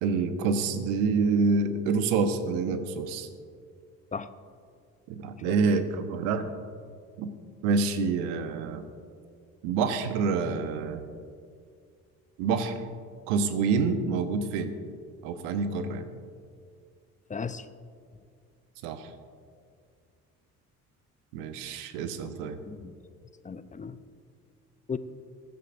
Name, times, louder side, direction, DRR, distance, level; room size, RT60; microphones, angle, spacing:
voice 1, 0.0-3.3 5.1-6.5 7.2-7.3 7.6-8.8 9.6-11.0 12.4-12.8 13.3-14.7 15.2-16.1 18.8-19.1 21.3-22.6, right 4 dB, 70° right, 9 dB, 1.2 m, -27 dB
voice 2, 17.3-17.7 22.6-22.9 23.4-24.0 24.9-25.0, left 5 dB, 15° left, 13 dB, 0.7 m, -35 dB
21.5 x 11.0 x 2.6 m, 2.2 s
figure-of-eight pair, 55°, 44 cm